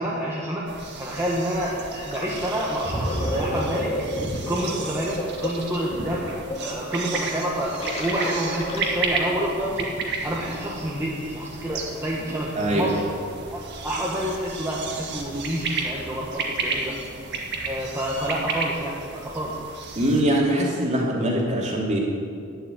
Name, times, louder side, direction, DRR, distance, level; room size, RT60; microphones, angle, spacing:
voice 1, 0.0-3.9 4.5-6.3 6.6-13.0 13.5-17.0 17.6-19.6, right 1 dB, 10° right, -5 dB, 1.5 m, -28 dB
sound 1, 0.7-20.2, right 4 dB, 50° right, 1.8 m, -33 dB
Gurgling, 2.1-2.3 2.7-9.2, left 1 dB, 30° left, 2.2 m, -30 dB
voice 2, 12.6-12.9 19.9-22.0, right 1 dB, 30° right, -2 dB, 2.7 m, -22 dB
11.5 x 10.0 x 9.2 m, 2.3 s
head